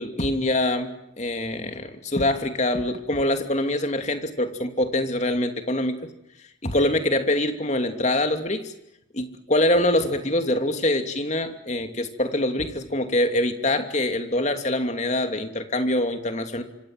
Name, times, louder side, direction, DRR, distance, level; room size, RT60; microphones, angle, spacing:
voice 1, 0.0-6.0 6.6-8.7 9.1-16.6, left 1 dB, 35° left, 7 dB, 2.7 m, -24 dB
26.5 x 26.0 x 7.9 m, 0.83 s
head